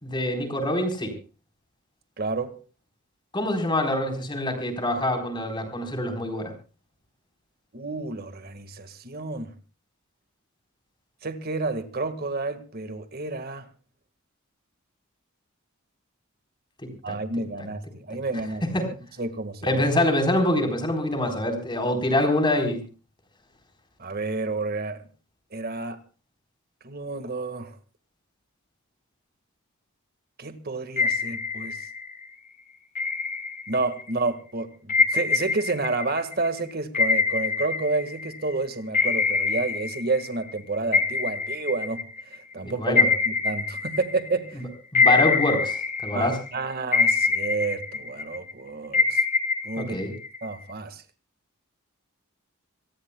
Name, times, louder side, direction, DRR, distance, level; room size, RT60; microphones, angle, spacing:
voice 1, 0.0-1.1 3.3-6.5 17.1-17.2 18.7-18.9 19.6-22.8 42.6-43.1 44.9-46.3 49.8-50.1, left 1 dB, 20° left, 4.1 m, -25 dB
voice 2, 2.2-2.6 7.7-9.5 11.2-13.7 17.0-18.7 19.2-19.8 24.0-25.0 25.5-26.0 26.8-27.8 30.4-31.9 33.7-42.0 42.3-44.6 46.1-49.2 49.6-50.0 50.4-51.0, right 3 dB, 45° right, 1.7 m, -30 dB
sound 1, 31.0-32.2 32.9-34.1 34.9-38.5 38.9-40.6 40.9-44.5 44.9-46.5 46.9-48.5 48.9-50.6, left 4 dB, 40° left, 2.9 m, -25 dB
26.0 x 18.5 x 2.3 m
head